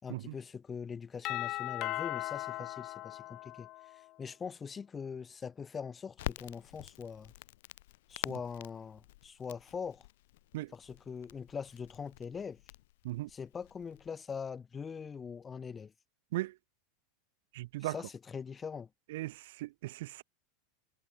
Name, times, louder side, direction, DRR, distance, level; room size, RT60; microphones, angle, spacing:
voice 1, 0.0-7.3 8.1-10.1 10.7-12.6 13.3-15.9 17.8-18.9, left 6 dB, 25° left, 6.2 m, -42 dB
Doorbell, 1.2-4.1, left 18 dB, 50° left, 1.7 m, -38 dB
Crackle, 6.2-14.1, left 17 dB, 65° left, 4.1 m, -47 dB
voice 2, 17.5-17.9 19.1-20.2, right 18 dB, 65° right, 6.5 m, -37 dB
hypercardioid pair, 90°, 0 cm